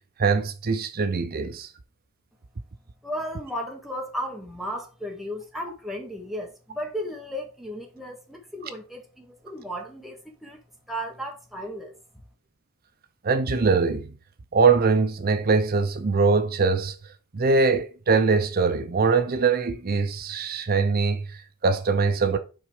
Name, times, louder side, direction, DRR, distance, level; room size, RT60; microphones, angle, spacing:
voice 1, 0.2-1.7 13.2-14.1 14.5-16.9 17.3-22.4, right 4 dB, 45° right, 0.6 m, -22 dB
voice 2, 3.0-10.6 10.9-11.9, equal, ahead, 1.4 m, -35 dB
5.9 x 3.9 x 4.9 m
head